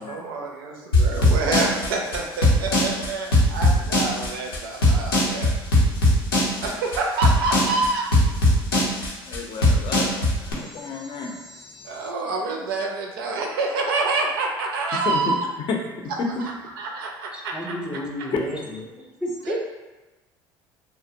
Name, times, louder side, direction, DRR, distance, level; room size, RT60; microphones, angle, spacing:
voice 1, 0.0-5.5 6.6-8.1 11.8-15.5 16.4-17.6, right 3 dB, 80° right, 1 dB, 0.4 m, -27 dB
sound 1, 0.9-10.5, left 1 dB, 90° left, 0.6 m, -19 dB
voice 2, 9.2-10.2 10.5-12.1 15.1-15.3 15.7-15.8 18.3-18.4, left 5 dB, 45° left, 2 dB, 0.5 m, -31 dB
voice 3, 17.3-19.6, equal, 5° right, -1 dB, 0.6 m, -32 dB
2.6 x 2.0 x 2.7 m, 1.1 s
hypercardioid pair, 65°, 12 cm